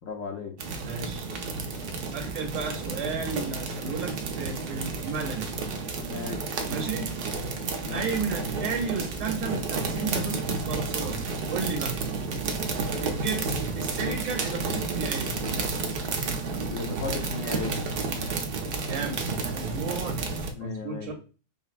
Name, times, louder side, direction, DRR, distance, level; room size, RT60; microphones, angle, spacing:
voice 1, 0.0-0.5 6.1-6.4 7.8-8.1 16.6-17.7 20.5-21.1, left 4 dB, 70° left, 2 dB, 1.0 m, -35 dB
sound 1, 0.6-20.5, right 4 dB, 65° right, 0.6 m, -31 dB
voice 2, 0.8-1.2 2.1-5.5 6.6-7.1 7.9-12.0 13.0-15.4 18.8-19.2 19.5-20.2 20.6-21.1, right 4 dB, 90° right, -10 dB, 1.6 m, -33 dB
5.4 x 2.0 x 2.4 m, 0.35 s
omnidirectional pair, 1.5 m